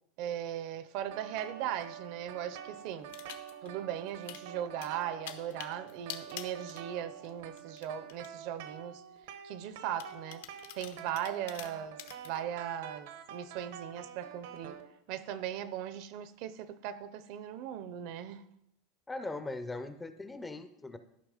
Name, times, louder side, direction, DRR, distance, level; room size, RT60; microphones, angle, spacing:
voice 1, 0.2-3.1 3.6-9.0 9.4-10.4 10.7-12.0 12.2-14.8 15.1-18.4, right 10 dB, 50° right, 0.6 m, -38 dB
sound 1, 1.0-14.9, right 9 dB, 70° right, 1.0 m, -47 dB
sound 2, 3.1-3.7 4.1-4.4 4.8-7.3 7.6-8.3 8.9-9.0 10.0-12.3, left 12 dB, 75° left, 0.9 m, -46 dB
voice 2, 19.1-21.0, left 2 dB, 10° left, 0.5 m, -40 dB
12.5 x 5.8 x 4.9 m
supercardioid pair, 170°, 0 cm